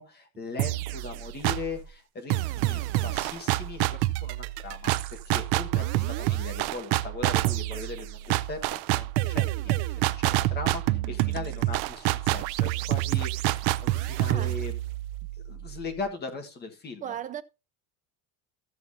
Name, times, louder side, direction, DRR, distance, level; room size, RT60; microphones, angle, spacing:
voice 1, 0.0-14.8 15.4-17.2, left 4 dB, 25° left, 1.5 m, -39 dB
sound 1, 0.6-1.8 2.3-16.0, right 17 dB, 80° right, 0.6 m, -28 dB
voice 2, 14.3-14.6 17.0-17.4, right 10 dB, 20° right, 0.4 m, -36 dB
14.0 x 7.0 x 2.7 m
cardioid pair, 170°, 39 cm